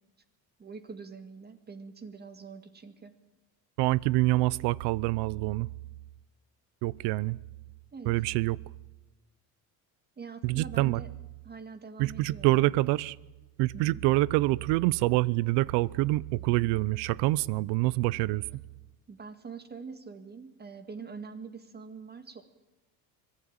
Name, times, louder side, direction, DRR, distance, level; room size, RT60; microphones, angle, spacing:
voice 1, 0.6-3.1 7.9-8.1 10.2-11.1 11.4-12.7 13.7-14.0 19.1-22.4, right 5 dB, 25° right, 1.9 m, -44 dB
voice 2, 3.8-5.7 6.8-7.4 8.1-8.6 10.4-11.0 12.0-13.2 13.6-18.4, right 19 dB, 85° right, 0.8 m, -26 dB
25.5 x 19.0 x 8.9 m
cardioid pair, 135°, 40 cm